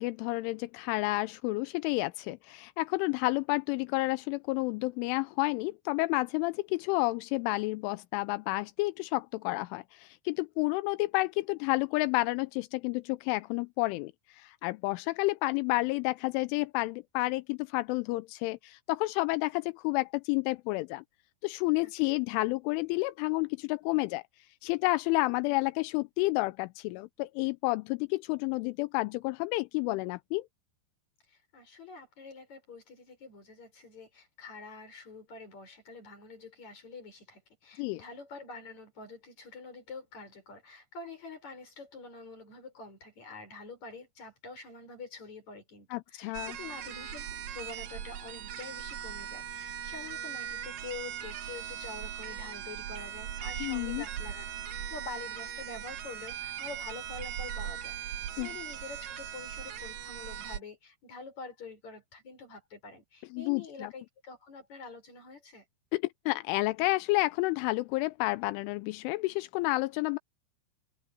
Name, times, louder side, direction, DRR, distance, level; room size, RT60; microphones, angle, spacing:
voice 1, 0.0-21.0 21.4-24.2 24.6-30.5 37.8-38.0 45.9-46.6 53.6-54.0 58.4-58.5 63.3-63.9 65.9-70.2, left 22 dB, 85° left, 3.1 m, -30 dB
voice 2, 21.8-22.1 31.3-65.6, left 4 dB, 35° left, 7.0 m, -46 dB
sound 1, 46.3-60.6, right 9 dB, 65° right, 2.5 m, -39 dB
omnidirectional pair, 5.5 m